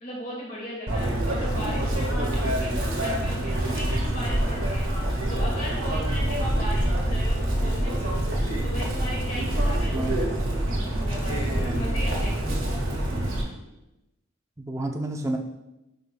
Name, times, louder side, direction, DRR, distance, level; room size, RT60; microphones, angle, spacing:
voice 1, 0.0-4.9 5.3-8.2 8.6-10.2 10.5-12.8, equal, 40° left, -4 dB, 2.0 m, -37 dB
Chirp tweet, 0.9-13.4, right 1 dB, 75° right, 1.6 m, -26 dB
voice 2, 9.9-10.2 14.6-15.4, right 1 dB, 15° right, 3 dB, 0.5 m, -30 dB
10.5 x 5.2 x 2.2 m, 0.94 s
head